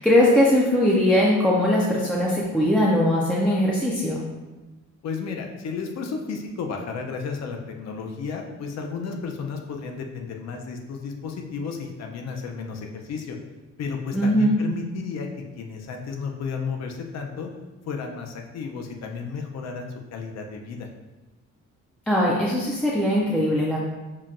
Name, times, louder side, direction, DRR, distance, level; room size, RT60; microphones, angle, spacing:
voice 1, 0.0-4.2 14.1-14.6 22.1-23.8, left 1 dB, 5° left, -5 dB, 0.4 m, -20 dB
voice 2, 5.0-13.4 13.8-15.3 15.6-17.5 17.9-20.9, left 5 dB, 60° left, 3 dB, 0.6 m, -33 dB
5.6 x 2.2 x 2.5 m, 1.1 s
cardioid pair, 130°, 30 cm